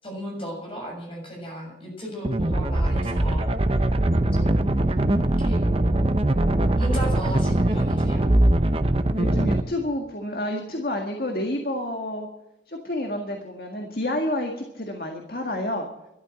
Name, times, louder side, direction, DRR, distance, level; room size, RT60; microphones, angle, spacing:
voice 1, 0.0-3.5 4.4-4.7 5.4-5.6 6.8-8.2, equal, 30° left, 0 dB, 6.9 m, -35 dB
sound 1, 2.2-9.6, right 1 dB, 30° right, 0.8 m, -21 dB
voice 2, 9.2-12.3 12.7-15.9, left 1 dB, 55° left, 3 dB, 1.8 m, -29 dB
13.0 x 12.0 x 7.7 m, 0.96 s
head